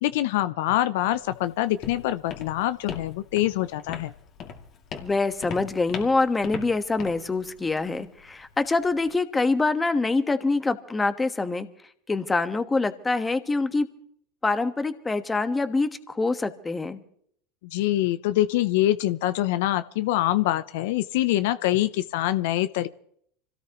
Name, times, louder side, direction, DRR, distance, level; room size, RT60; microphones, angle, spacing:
voice 1, 0.0-4.1 17.6-22.9, left 14 dB, 75° left, 14 dB, 0.6 m, -25 dB
Walk footsteps, 1.1-9.1, left 7 dB, 45° left, 2.4 m, -41 dB
voice 2, 5.0-11.7 12.1-13.9 14.4-17.0, left 3 dB, 15° left, 10 dB, 1.3 m, -25 dB
25.5 x 17.5 x 3.0 m, 0.65 s
supercardioid pair, 105°, 0 cm